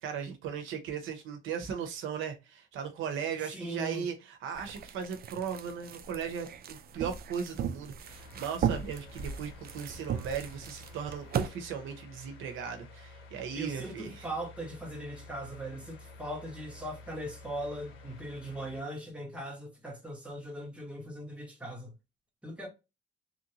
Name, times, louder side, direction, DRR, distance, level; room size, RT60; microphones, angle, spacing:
voice 1, 0.0-14.3, right 7 dB, 85° right, 0.7 m, -37 dB
voice 2, 3.4-4.0 13.5-21.9 22.4-22.7, right 1 dB, 5° right, 1.4 m, -39 dB
sound 1, 4.5-11.5, right 8 dB, 50° right, 0.4 m, -37 dB
sound 2, 8.0-18.8, left 3 dB, 90° left, 0.8 m, -51 dB
3.1 x 2.6 x 2.8 m
cardioid pair, 90°, 20 cm